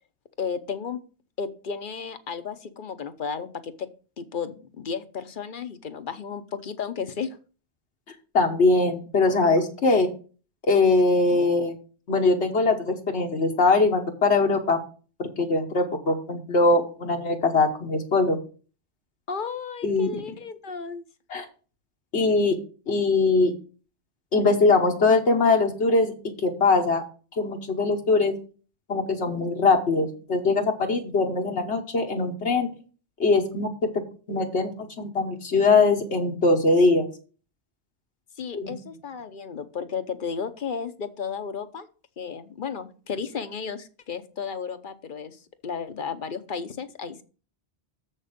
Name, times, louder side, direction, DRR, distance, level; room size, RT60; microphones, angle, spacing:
voice 1, 0.4-1.0 1.4-3.9 4.2-7.4 11.3-11.5 19.3-21.0 38.4-41.9 42.2-47.2, left 6 dB, 50° left, 11 dB, 0.9 m, -33 dB
voice 2, 8.3-10.1 10.7-11.7 12.1-14.8 15.2-18.4 19.8-20.1 21.3-21.4 22.1-22.5 22.9-23.5 24.3-26.1 26.4-27.0 27.4-28.3 28.9-32.7 33.2-33.7 34.3-34.7 35.0-37.0 38.5-38.7, left 3 dB, 80° left, 1 dB, 1.5 m, -21 dB
7.3 x 6.5 x 5.1 m, 0.38 s
omnidirectional pair, 1.1 m